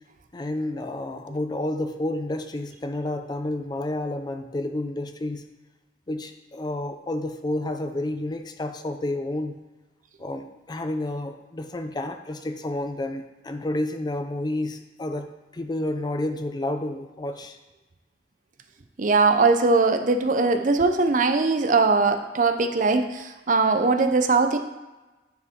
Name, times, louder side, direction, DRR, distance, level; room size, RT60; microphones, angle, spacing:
voice 1, 0.3-5.4 6.1-9.6 10.2-17.6, left 1 dB, 25° left, 7 dB, 0.4 m, -30 dB
voice 2, 19.0-24.6, right 3 dB, 45° right, 7 dB, 0.5 m, -20 dB
9.5 x 5.0 x 3.6 m, 1.1 s
head